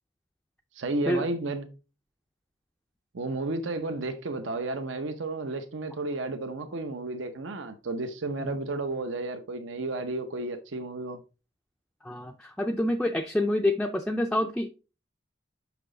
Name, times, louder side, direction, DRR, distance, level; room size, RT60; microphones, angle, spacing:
voice 1, 0.7-1.7 3.1-11.2, right 2 dB, 80° right, 0.7 m, -32 dB
voice 2, 12.0-14.7, left 1 dB, 5° left, 0.4 m, -27 dB
5.9 x 5.8 x 3.8 m
head